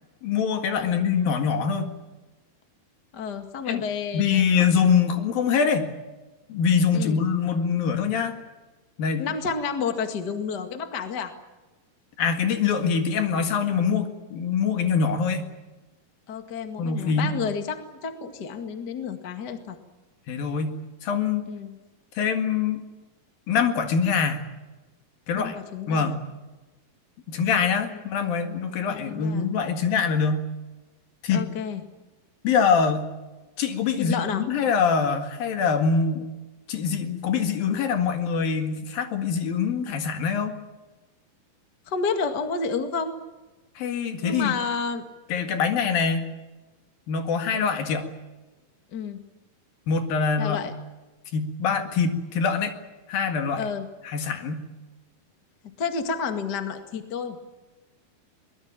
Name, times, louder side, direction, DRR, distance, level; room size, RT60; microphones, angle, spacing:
voice 1, 0.2-1.9 3.7-3.8 4.1-5.9 6.5-8.4 9.0-9.3 12.2-15.5 16.8-17.4 20.3-21.5 22.2-22.8 23.5-24.4 25.3-25.6 25.9-26.2 27.3-30.5 31.2-31.5 32.4-33.1 33.6-36.3 36.7-40.5 43.8-44.5 45.3-46.3 47.1-48.1 49.9-50.6 51.3-52.8 53.1-53.6 54.0-54.7, left 6 dB, 65° left, 6 dB, 3.6 m, -24 dB
voice 2, 3.1-4.5 6.9-7.2 9.2-11.3 16.3-19.8 21.5-21.8 25.3-26.1 27.9-28.0 28.8-29.5 31.3-31.8 34.0-34.5 41.9-43.2 44.2-45.0 48.9-49.2 50.4-50.7 53.6-53.9 55.8-57.4, left 5 dB, 35° left, 6 dB, 1.8 m, -30 dB
23.0 x 20.0 x 8.9 m, 1.2 s
omnidirectional pair, 4.5 m